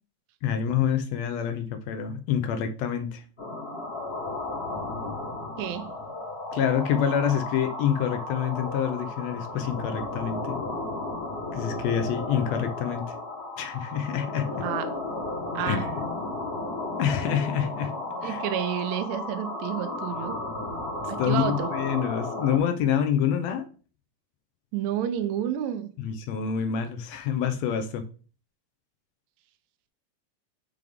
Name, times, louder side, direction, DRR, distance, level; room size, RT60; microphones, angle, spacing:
voice 1, 0.4-3.2 6.5-10.6 11.5-13.1 13.6-14.6 15.6-15.9 17.0-18.0 18.2-18.4 21.0-23.7 26.0-28.0, left 8 dB, 75° left, 1.7 m, -27 dB
sound 1, 3.4-22.6, left 2 dB, 35° left, 1.0 m, -34 dB
voice 2, 5.6-5.9 14.6-15.0 15.5-15.9 18.2-20.4 21.1-21.7 24.7-25.9, right 10 dB, 75° right, 1.9 m, -30 dB
7.6 x 3.5 x 3.5 m
omnidirectional pair, 3.4 m